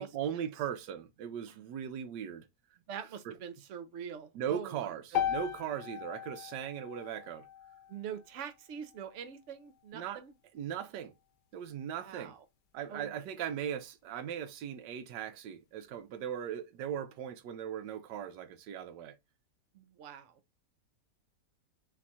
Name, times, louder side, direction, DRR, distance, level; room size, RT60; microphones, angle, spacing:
voice 1, 0.0-2.5 3.2-3.3 4.3-7.4 9.9-10.2 10.5-11.1 11.5-12.3 12.7-19.1, right 9 dB, 80° right, 1.3 m, -38 dB
voice 2, 2.9-4.9 7.9-10.3 11.9-12.4 12.9-13.2 19.7-20.3, right 8 dB, 60° right, 0.8 m, -44 dB
sound 1, 5.1-9.3, left 10 dB, 70° left, 1.1 m, -38 dB
4.4 x 2.4 x 4.1 m
omnidirectional pair, 1.9 m